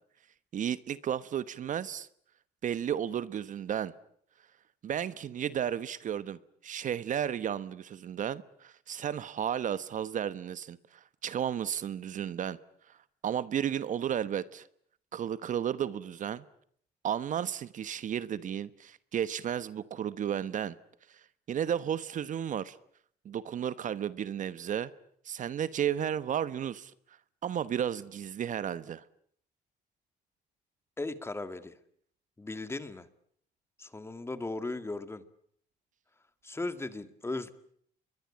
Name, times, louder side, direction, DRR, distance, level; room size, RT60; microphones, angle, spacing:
voice 1, 0.5-2.1 2.6-3.9 4.8-12.6 12.9-13.0 13.2-14.7 15.1-16.4 17.0-20.7 21.1-21.2 21.5-22.8 23.2-24.9 25.2-26.9 27.4-29.0, right 9 dB, 50° right, 1.1 m, -33 dB
voice 2, 31.0-31.7 32.4-33.1 33.8-35.2 36.4-37.5, left 2 dB, 15° left, 2.1 m, -37 dB
28.5 x 22.5 x 8.7 m
cardioid pair, 110°, 17 cm